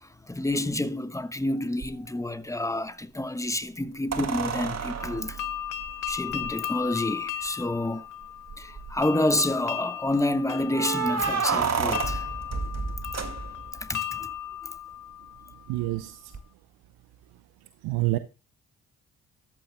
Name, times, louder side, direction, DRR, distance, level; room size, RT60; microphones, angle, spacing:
voice 1, 0.0-5.4 6.1-8.0 8.6-12.3 13.8-14.3 14.6-14.7, left 1 dB, 10° left, 1.2 m, -29 dB
sound 1, 1.8-1.9 4.1-6.5 7.5-7.6 7.8-7.9 8.5-9.0 10.7-13.8 16.3-16.4, right 6 dB, 40° right, 2.1 m, -30 dB
sound 2, 5.0-15.8, left 11 dB, 50° left, 0.8 m, -36 dB
voice 2, 15.7-16.3 17.8-18.2, right 18 dB, 70° right, 0.8 m, -27 dB
13.5 x 11.5 x 2.2 m
hypercardioid pair, 45°, 39 cm